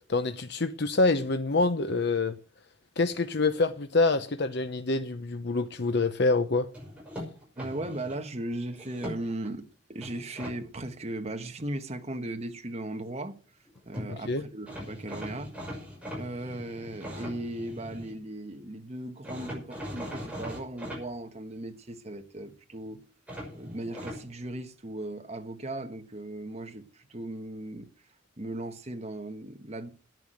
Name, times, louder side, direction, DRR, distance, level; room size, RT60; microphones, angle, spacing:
voice 1, 0.1-2.3 3.0-6.7 14.1-14.4, left 3 dB, 55° left, 0.8 m, -26 dB
sound 1, 6.7-8.2 8.7-9.5 10.0-10.6 13.7-13.8 13.9-14.1 14.7-18.1 19.2-21.0 23.3-24.2, equal, 5° right, 6.0 m, -40 dB
voice 2, 7.6-13.4 13.8-15.5 16.2-23.0 23.5-27.9 28.4-29.9, right 1 dB, 35° right, 1.3 m, -37 dB
10.5 x 9.4 x 7.9 m
head